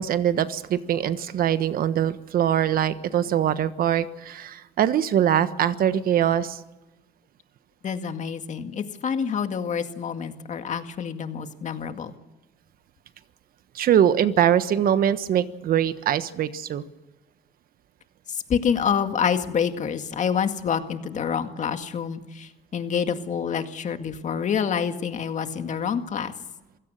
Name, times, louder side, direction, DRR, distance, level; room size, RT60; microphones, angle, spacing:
voice 1, 0.0-6.6 13.7-16.8, right 10 dB, 60° right, 12 dB, 1.3 m, -22 dB
voice 2, 7.8-12.1 18.3-26.3, left 7 dB, 45° left, 8 dB, 2.0 m, -27 dB
27.0 x 17.0 x 6.7 m, 1.1 s
cardioid pair, 110°, 17 cm